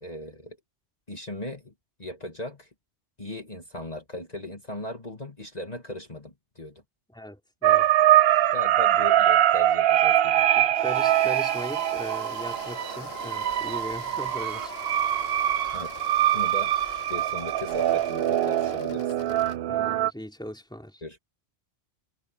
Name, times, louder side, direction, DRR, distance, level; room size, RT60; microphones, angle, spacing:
voice 1, 0.0-0.6 1.1-1.7 2.0-2.7 3.2-6.8 8.5-10.5 15.7-16.0 16.3-16.7 17.1-19.1 21.0-21.2, left 1 dB, 35° left, 2.7 m, -38 dB
voice 2, 7.1-7.9 10.5-14.7 19.7-21.0, equal, 5° left, 3.9 m, -39 dB
sound 1, 7.6-20.1, right 12 dB, 70° right, 0.8 m, -23 dB
sound 2, 10.8-19.6, left 8 dB, 70° left, 1.1 m, -44 dB
sound 3, 12.4-18.1, left 1 dB, 55° left, 4.8 m, -52 dB
omnidirectional pair, 1.1 m